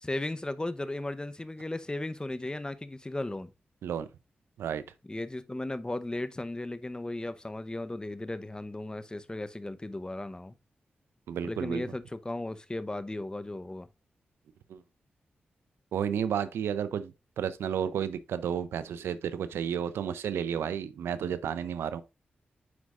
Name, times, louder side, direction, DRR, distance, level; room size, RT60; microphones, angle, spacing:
voice 1, 0.0-3.5 5.1-10.5 11.4-13.9, left 2 dB, 20° left, 0.8 m, -36 dB
voice 2, 11.3-11.9 14.7-14.8 15.9-22.0, right 8 dB, 90° right, 0.5 m, -32 dB
9.5 x 4.7 x 2.4 m
supercardioid pair, 45°, 4 cm